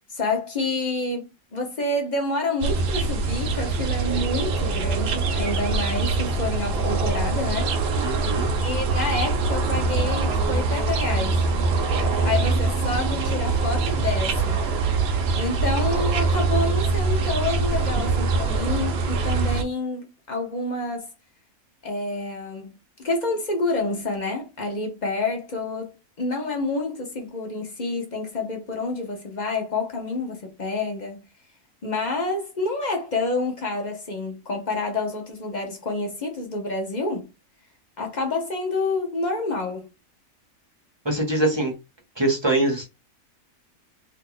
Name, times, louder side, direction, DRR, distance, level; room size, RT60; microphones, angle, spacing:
voice 1, 0.1-7.8 8.6-11.4 12.2-14.6 15.4-21.1 21.8-22.7 23.0-31.2 31.8-37.3 38.0-39.9, left 2 dB, 35° left, 0.9 m, -28 dB
sound 1, 2.6-19.6, right 3 dB, 60° right, 0.7 m, -23 dB
voice 2, 8.0-8.5 41.0-41.7 42.2-42.9, right 2 dB, 25° right, 0.7 m, -23 dB
2.9 x 2.6 x 3.8 m
omnidirectional pair, 1.6 m